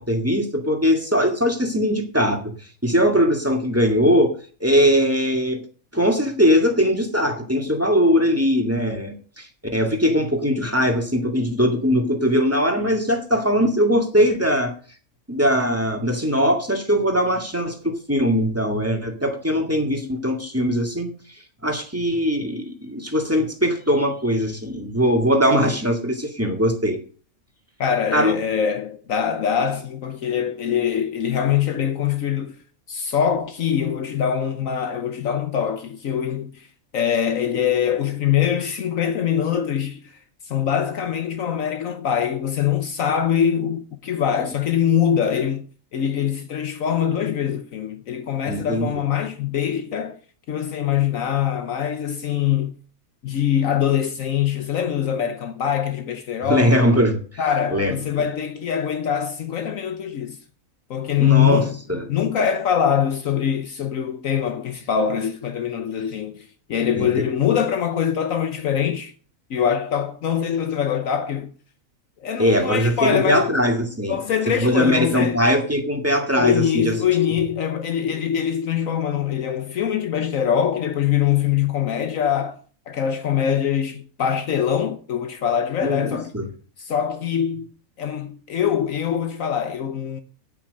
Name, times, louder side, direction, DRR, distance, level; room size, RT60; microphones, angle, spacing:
voice 1, 0.0-2.5 2.8-4.4 4.6-5.6 5.9-14.7 15.3-21.1 21.6-27.0 28.1-28.4 48.5-48.9 56.4-57.2 57.7-57.9 61.2-61.6 61.9-62.0 67.0-67.1 72.4-74.2 74.5-77.0 85.8-86.5, equal, 10° right, 2.1 m, -20 dB
voice 2, 27.8-32.6 32.9-36.7 36.9-40.2 40.5-45.7 45.9-50.2 50.5-52.8 53.2-56.8 57.4-60.4 60.9-61.8 62.1-69.1 69.5-71.5 72.2-73.5 74.1-75.4 76.4-82.6 82.9-86.3 86.8-87.7 88.0-90.2, left 9 dB, 70° left, 1.3 m, -23 dB
9.3 x 9.0 x 6.6 m
omnidirectional pair, 1.5 m